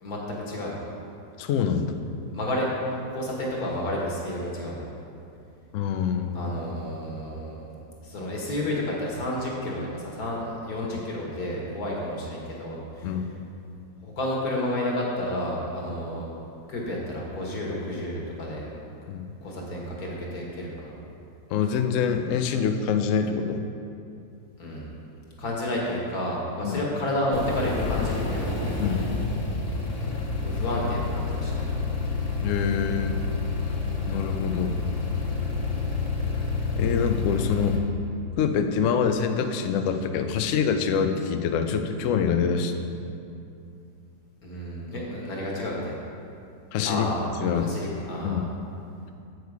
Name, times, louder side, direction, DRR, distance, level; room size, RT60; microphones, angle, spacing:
voice 1, 0.0-0.8 2.3-2.7 3.1-4.9 6.3-7.6 8.0-13.1 14.0-16.3 16.7-18.7 19.4-20.9 24.6-24.9 25.4-28.6 30.0-31.7 44.4-46.0 46.8-47.3 47.6-48.5, left 1 dB, 55° left, -3 dB, 1.8 m, -31 dB
voice 2, 1.4-1.9 5.7-6.5 13.0-13.3 19.1-19.3 21.5-23.6 26.6-26.8 28.8-29.1 32.4-33.2 34.1-34.8 36.7-37.8 38.4-42.8 46.7-47.1 47.4-47.7 48.2-48.5, left 7 dB, 85° left, 7 dB, 0.6 m, -25 dB
sound 1, 27.3-37.8, left 3 dB, 40° left, 0.5 m, -28 dB
8.0 x 6.5 x 4.7 m, 2.6 s
omnidirectional pair, 2.0 m